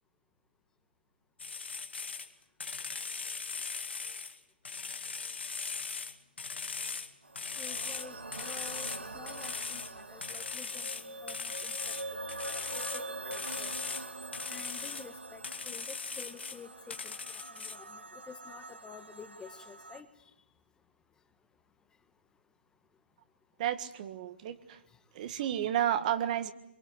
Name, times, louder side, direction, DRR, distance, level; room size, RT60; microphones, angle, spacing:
sound 1, 1.4-2.3 2.6-4.4 4.6-7.1 7.4-9.0 9.3-9.9 10.2-13.0 13.3-14.1 14.3-15.1 15.4-16.6 16.9-17.8, left 5 dB, 80° left, 2.2 m, -39 dB
sound 2, 7.2-20.0, right 2 dB, 90° right, 2.0 m, -44 dB
voice 1, 7.6-8.9 9.1-9.8 10.1-11.9 12.9-13.7 14.5-17.1 17.6-20.1, left 6 dB, 10° left, 9 dB, 1.5 m, -50 dB
voice 2, 23.6-24.5 25.1-26.5, right 11 dB, 45° right, 11 dB, 1.7 m, -31 dB
23.5 x 23.5 x 9.7 m, 0.80 s
figure-of-eight pair, 130°, 6 cm